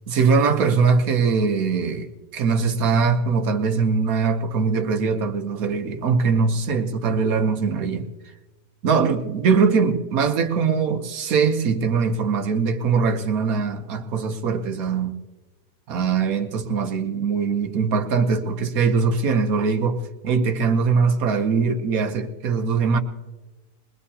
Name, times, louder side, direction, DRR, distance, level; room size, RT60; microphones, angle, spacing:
voice 1, 0.1-8.1 8.8-15.2 15.9-23.0, right 5 dB, 60° right, 1.3 m, -21 dB
21.5 x 20.0 x 2.8 m
omnidirectional pair, 1.8 m